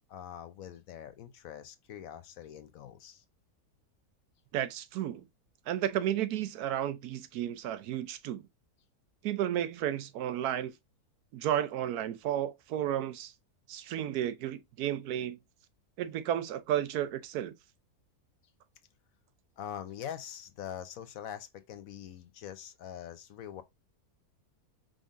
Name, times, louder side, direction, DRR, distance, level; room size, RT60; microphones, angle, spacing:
voice 1, 0.1-3.2 19.6-23.6, left 9 dB, 65° left, 1.0 m, -43 dB
voice 2, 4.5-5.2 5.7-8.4 9.2-10.7 11.3-13.3 13.7-15.4 16.0-17.5, right 11 dB, 75° right, 1.1 m, -32 dB
5.1 x 3.8 x 2.4 m
omnidirectional pair, 1.7 m